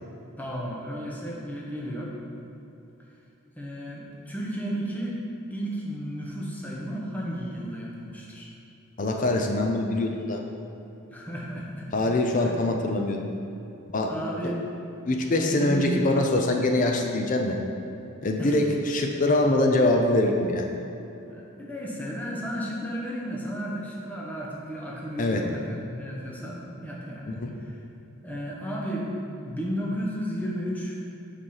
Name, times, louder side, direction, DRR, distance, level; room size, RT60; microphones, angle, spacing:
voice 1, 0.4-2.1 3.6-5.2 5.5-8.5 11.1-11.9 12.4-12.6 14.1-14.6 15.4-15.9 18.4-18.6 21.3-27.8 28.2-31.0, equal, 10° left, -4 dB, 0.9 m, -33 dB
voice 2, 9.0-10.4 11.9-13.2 13.9-14.1 14.4-14.5 15.1-17.6 18.2-20.7 25.2-25.4 27.3-27.5, left 2 dB, 40° left, 2 dB, 0.5 m, -24 dB
5.4 x 4.2 x 5.6 m, 2.9 s
head